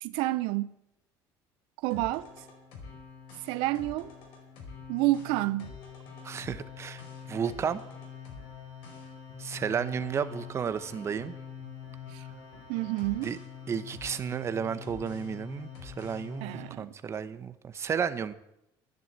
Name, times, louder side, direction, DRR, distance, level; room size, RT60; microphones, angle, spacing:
voice 1, 0.0-0.7 1.8-2.3 3.4-4.1 4.9-5.7 12.1-12.2 12.7-13.3 16.4-16.9, right 18 dB, 85° right, 0.5 m, -29 dB
sound 1, 1.9-16.7, left 7 dB, 75° left, 4.8 m, -45 dB
voice 2, 6.2-7.8 9.4-11.3 13.2-13.4 13.7-18.3, right 7 dB, 30° right, 0.9 m, -33 dB
11.0 x 10.5 x 8.0 m
cardioid pair, 125°, 9 cm